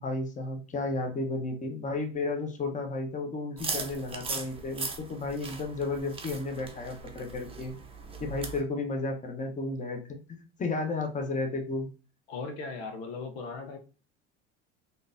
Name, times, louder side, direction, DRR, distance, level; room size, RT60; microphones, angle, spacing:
voice 1, 0.0-7.8 8.2-11.9, left 3 dB, 25° left, 3 dB, 0.9 m, -33 dB
sound 1, 3.6-8.6, right 4 dB, 15° right, 0.7 m, -39 dB
voice 2, 12.3-13.8, left 4 dB, 85° left, 5 dB, 0.8 m, -38 dB
3.7 x 2.6 x 2.6 m, 0.36 s
supercardioid pair, 95°, 32 cm